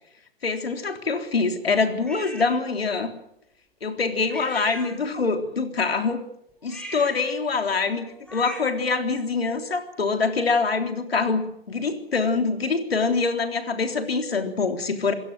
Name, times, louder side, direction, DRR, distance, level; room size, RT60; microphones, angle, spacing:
voice 1, 0.4-3.1 3.8-6.2 6.6-15.1, left 4 dB, 85° left, 7 dB, 3.7 m, -25 dB
sound 1, 2.1-2.6 4.3-5.4 6.6-8.9, equal, 5° left, 5.3 m, -39 dB
27.5 x 16.5 x 7.8 m, 0.77 s
hypercardioid pair, 115°, 30 cm